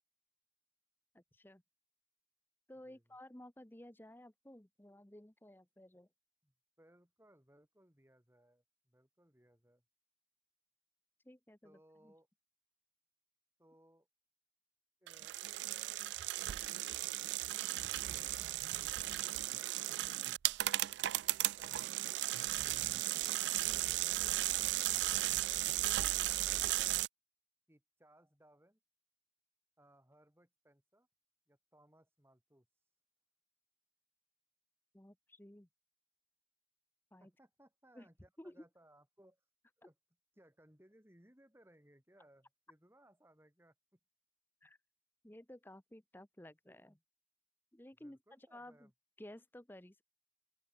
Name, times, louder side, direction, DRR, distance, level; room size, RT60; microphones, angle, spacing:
voice 1, 1.1-1.6 2.7-6.1 11.2-12.1 34.9-35.7 37.1-37.3 37.9-38.1 38.4-38.6 44.6-44.8 45.2-47.0 47.7-48.9 49.2-50.0, left 1 dB, 10° left, 0.8 m, -55 dB
voice 2, 2.8-3.2 6.4-9.8 11.6-12.3 13.6-14.1 15.0-17.5 17.7-20.4 27.7-28.8 29.8-31.1 31.5-32.7 37.2-39.4 39.8-39.9 40.4-44.0 48.0-48.9, right 1 dB, 15° right, 2.6 m, -67 dB
Gear Change OS, 15.1-27.1, right 16 dB, 80° right, 0.3 m, -35 dB
open air
head